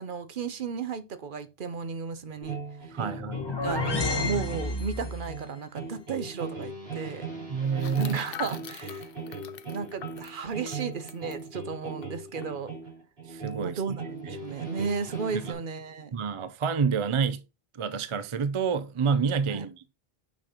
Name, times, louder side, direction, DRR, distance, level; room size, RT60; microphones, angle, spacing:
voice 1, 0.0-3.0 3.6-7.3 7.9-9.1 9.6-12.7 13.6-16.1 19.5-19.6, right 5 dB, 55° right, 0.9 m, -34 dB
sound 1, 2.4-15.5, right 4 dB, 75° right, 2.8 m, -39 dB
voice 2, 2.9-3.4 7.5-8.2 13.3-13.8 15.3-15.5 16.1-17.4 17.7-19.9, right 6 dB, 40° right, 0.5 m, -28 dB
sound 2, 3.1-5.4, left 3 dB, 30° left, 0.6 m, -30 dB
sound 3, 5.9-6.0 6.2-6.4 7.8-11.4 12.0-12.1 12.4-12.7, left 9 dB, 65° left, 0.8 m, -43 dB
6.4 x 6.2 x 2.8 m
omnidirectional pair, 1.0 m